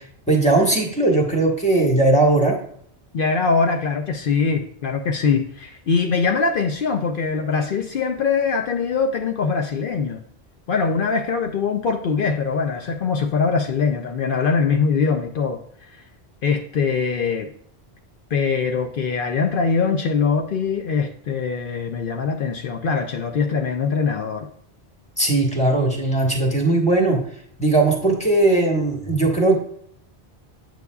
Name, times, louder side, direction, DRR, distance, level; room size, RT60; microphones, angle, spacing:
voice 1, 0.3-2.6 25.2-27.2 27.6-29.6, right 2 dB, 5° left, -1 dB, 1.3 m, -18 dB
voice 2, 3.1-10.2 10.7-15.6 16.4-17.5 18.3-24.5, left 5 dB, 60° left, 5 dB, 0.7 m, -22 dB
8.3 x 6.2 x 2.3 m, 0.65 s
omnidirectional pair, 1.1 m